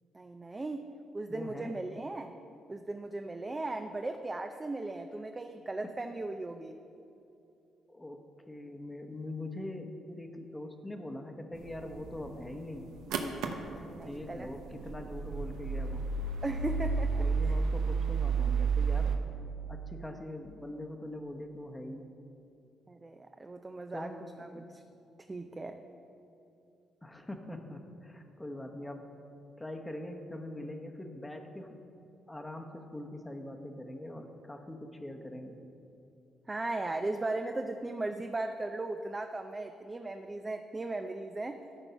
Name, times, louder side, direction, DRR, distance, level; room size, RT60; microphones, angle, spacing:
voice 1, 0.1-0.9 1.1-2.3 2.7-6.8 13.7-14.5 16.4-17.6 22.9-24.1 24.4-24.8 25.3-25.8 36.5-41.6, right 2 dB, 20° right, 6 dB, 0.4 m, -37 dB
voice 2, 1.3-1.8 7.9-12.8 13.9-16.1 17.2-19.2 19.7-22.1 23.9-24.6 27.0-29.1 29.6-31.7 32.3-35.6, left 1 dB, 10° left, 4 dB, 0.9 m, -42 dB
sound 1, 11.5-19.2, right 5 dB, 90° right, 0.7 m, -32 dB
13.0 x 4.4 x 5.6 m, 2.7 s
cardioid pair, 90°, 0 cm